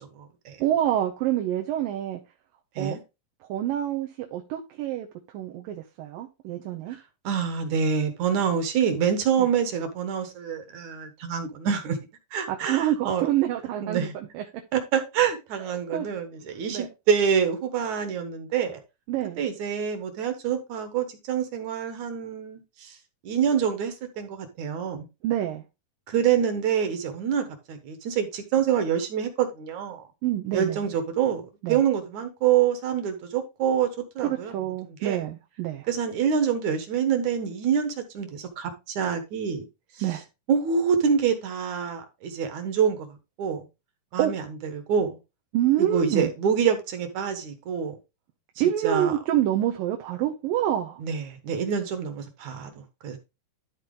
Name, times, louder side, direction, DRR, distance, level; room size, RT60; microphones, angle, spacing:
voice 1, 0.0-0.6 2.8-3.0 7.2-12.0 12.3-13.3 13.8-14.1 14.7-18.8 19.4-23.0 23.2-25.1 26.1-30.0 30.5-33.9 34.2-34.5 35.0-35.2 35.9-39.6 40.5-43.1 43.4-43.7 44.1-44.4 44.7-45.2 45.8-48.0 48.8-49.1 51.0-53.2, right 7 dB, 65° right, 2.5 m, -26 dB
voice 2, 0.6-2.2 2.8-3.0 3.5-5.1 5.3-7.0 9.4-9.5 12.5-14.1 14.3-14.4 15.6-16.1 16.7-16.9 19.1-19.4 25.2-25.6 30.2-30.8 31.6-31.8 34.2-35.9 40.0-40.2 44.2-44.3 45.5-46.3 48.6-51.0, right 12 dB, 85° right, 2.7 m, -27 dB
12.5 x 4.2 x 3.8 m
omnidirectional pair, 3.9 m